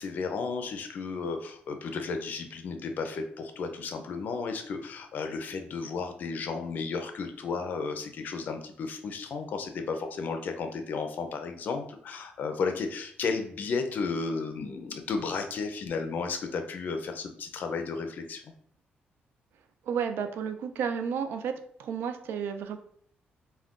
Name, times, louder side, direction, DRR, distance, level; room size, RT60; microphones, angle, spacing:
voice 1, 0.0-18.5, left 4 dB, 55° left, 6 dB, 0.4 m, -33 dB
voice 2, 19.9-21.5 21.8-22.8, right 7 dB, 85° right, 7 dB, 0.3 m, -31 dB
2.4 x 2.2 x 3.5 m, 0.63 s
cardioid pair, 155°, 4 cm